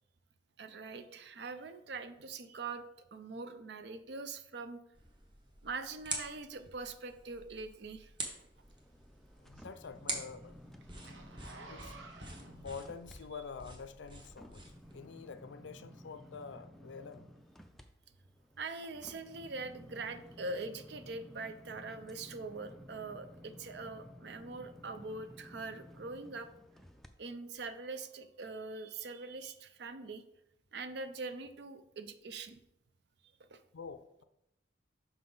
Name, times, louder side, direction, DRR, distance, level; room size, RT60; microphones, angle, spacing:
voice 1, 0.6-2.8 3.1-4.8 5.6-8.1 18.6-26.5 27.2-30.2 30.7-32.6 33.4-33.6, right 3 dB, 65° right, 10 dB, 0.5 m, -43 dB
sound 1, 4.9-15.0, right 2 dB, 25° right, 1.0 m, -46 dB
sound 2, 8.6-13.2 13.6-27.1 27.6-27.7, equal, ahead, 0.3 m, -55 dB
Zipper (clothing), 8.7-13.6 14.2-14.3, right 3 dB, 80° right, 0.9 m, -54 dB
voice 2, 9.4-10.6 11.7-11.9 12.5-14.6 14.9-17.3 33.7-34.2, left 5 dB, 80° left, 12 dB, 0.4 m, -47 dB
5.7 x 5.6 x 3.9 m, 0.84 s
head